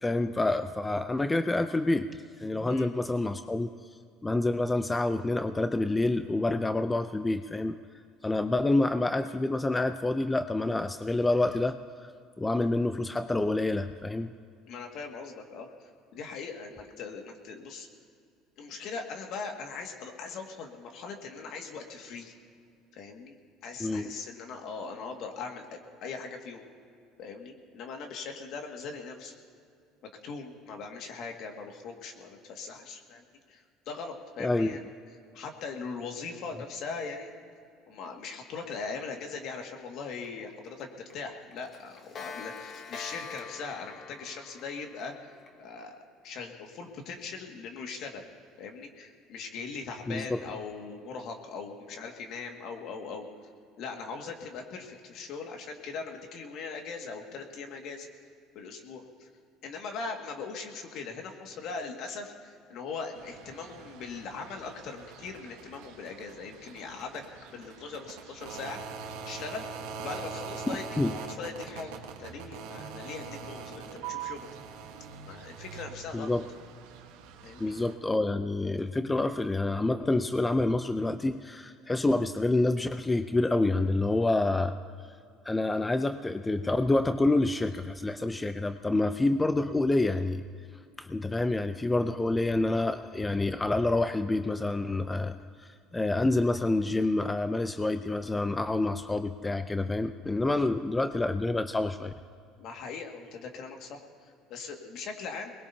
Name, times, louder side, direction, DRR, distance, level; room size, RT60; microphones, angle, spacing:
voice 1, 0.0-3.7 4.2-7.8 8.2-12.1 12.4-14.3 23.8-24.1 34.4-34.7 50.1-50.4 71.0-71.1 76.1-76.4 77.6-84.8 85.5-90.4 91.0-102.1, left 2 dB, 15° left, 10 dB, 0.5 m, -27 dB
voice 2, 14.7-15.7 16.1-17.9 18.6-22.3 22.9-23.3 23.6-26.7 27.2-29.3 30.2-34.8 35.3-37.3 37.9-45.3 45.6-46.0 46.2-48.2 48.6-53.3 53.8-58.1 58.5-59.3 59.6-67.2 67.5-74.5 75.3-76.3 77.4-77.7 102.6-105.5, left 4 dB, 60° left, 3 dB, 2.0 m, -40 dB
Clock, 40.2-40.3 40.6-40.8 41.1-41.2 41.5-45.5, left 5 dB, 40° left, 1.4 m, -44 dB
sound 1, 63.1-77.9, right 6 dB, 85° right, 1.4 m, -43 dB
23.0 x 20.5 x 2.8 m, 2.3 s
supercardioid pair, 100°, 0 cm